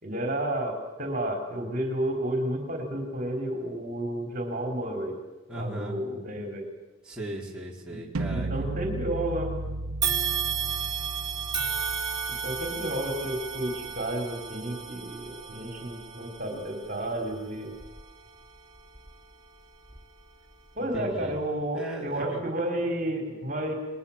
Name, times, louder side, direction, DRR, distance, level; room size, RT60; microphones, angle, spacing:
voice 1, 0.0-5.2 5.5-6.6 7.9-8.0 8.3-9.5 12.3-17.7 20.8-23.7, right 1 dB, 40° right, 3 dB, 4.1 m, -31 dB
voice 2, 5.5-6.0 7.0-8.5 20.8-21.3 21.7-22.4, right 1 dB, 5° right, -4 dB, 4.3 m, -37 dB
sound 1, 8.1-14.1, right 2 dB, 90° right, 0.8 m, -36 dB
sound 2, 10.0-19.3 19.8-20.0 21.0-21.1, right 7 dB, 20° right, 4.5 m, -34 dB
30.0 x 21.0 x 7.4 m, 1.2 s
head